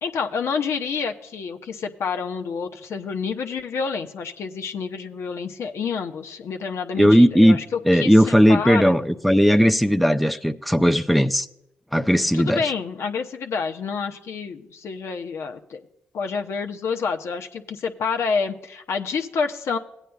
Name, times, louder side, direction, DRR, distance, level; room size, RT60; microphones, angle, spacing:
voice 1, 0.0-8.9 12.3-15.8 16.1-19.8, left 5 dB, 75° left, 0.9 m, -28 dB
voice 2, 7.0-7.6 7.9-11.5 11.9-12.6, equal, ahead, 0.5 m, -17 dB
17.0 x 9.1 x 2.3 m
supercardioid pair, 60°, 5 cm